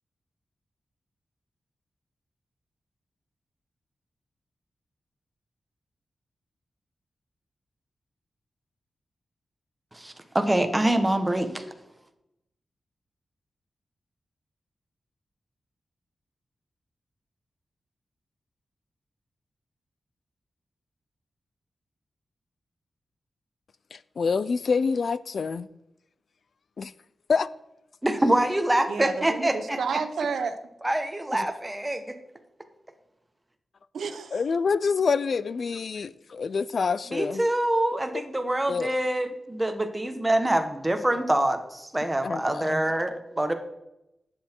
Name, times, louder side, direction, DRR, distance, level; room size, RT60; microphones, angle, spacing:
voice 1, 9.9-11.6 28.0-29.8 30.8-32.1 37.1-43.5, right 1 dB, 10° right, 1.0 m, -25 dB
voice 2, 23.9-25.7 26.8-26.9 27.3-27.5 31.3-31.5 34.3-37.4 38.7-38.9 42.2-42.7, left 5 dB, 50° left, 0.3 m, -27 dB
voice 3, 28.9-30.6 33.9-34.4, right 5 dB, 90° right, 0.8 m, -30 dB
11.0 x 7.9 x 4.5 m
wide cardioid pair, 175°, 0 cm